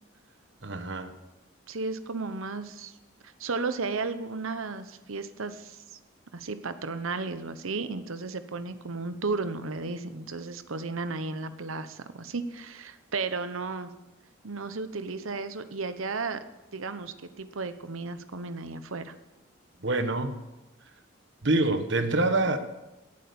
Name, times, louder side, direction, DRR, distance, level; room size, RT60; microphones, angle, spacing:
voice 1, 0.6-1.1 19.8-20.4 21.4-22.6, right 2 dB, 60° right, 9 dB, 1.2 m, -26 dB
voice 2, 1.7-2.9 3.4-6.0 6.3-13.9 14.4-16.4 16.7-19.1, right 3 dB, 80° right, 11 dB, 1.0 m, -34 dB
17.5 x 8.5 x 7.0 m, 1.0 s
head